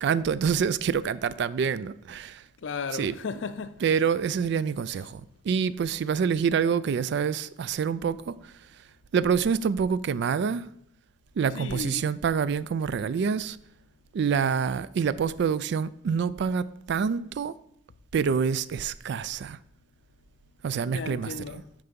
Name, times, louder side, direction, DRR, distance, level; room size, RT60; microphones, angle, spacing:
voice 1, 0.0-2.4 2.9-3.1 3.8-5.2 5.5-8.5 9.1-10.7 11.4-13.6 14.1-17.5 18.1-19.6 20.6-21.3, right 6 dB, 60° right, 0.3 m, -26 dB
voice 2, 2.6-3.8 11.6-12.1 20.9-21.7, left 5 dB, 70° left, 0.5 m, -35 dB
9.4 x 3.4 x 5.2 m
head